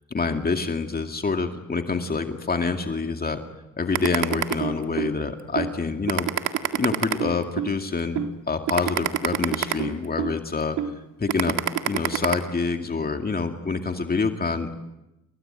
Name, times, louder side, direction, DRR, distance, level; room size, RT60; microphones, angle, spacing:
voice 1, 0.1-3.4 3.8-6.3 6.7-10.8 11.2-11.6 11.9-14.7, left 4 dB, 30° left, 5 dB, 2.2 m, -26 dB
sound 1, 3.9-5.1 5.6-5.7 6.1-7.7 8.2-8.3 8.7-10.3 10.8-10.9 11.3-12.3, right 11 dB, 85° right, 2.0 m, -25 dB
29.5 x 21.5 x 9.0 m, 0.94 s
cardioid pair, 90°, 30 cm